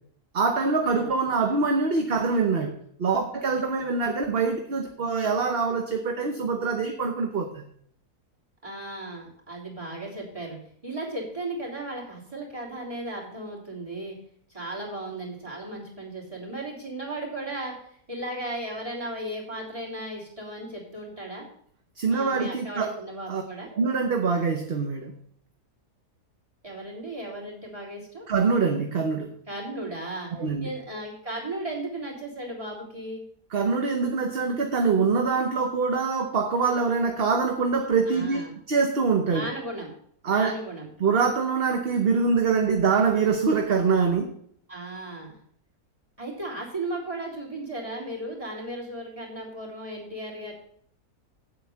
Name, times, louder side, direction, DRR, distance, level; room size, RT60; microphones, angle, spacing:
voice 1, 0.3-7.7 22.0-23.0 23.3-23.4 23.7-25.1 28.3-29.4 30.3-30.7 33.5-38.4 38.7-39.5 40.2-40.6 41.0-44.4, right 4 dB, 45° right, 4 dB, 1.1 m, -24 dB
voice 2, 8.6-10.6 10.8-14.2 14.5-21.5 22.1-23.7 26.6-28.3 29.5-30.3 30.6-33.2 38.1-38.5 39.3-39.9 40.2-40.9 44.7-45.4 46.2-50.5, right 1 dB, 20° right, -1 dB, 3.7 m, -36 dB
8.0 x 8.0 x 7.0 m, 0.65 s
omnidirectional pair, 1.6 m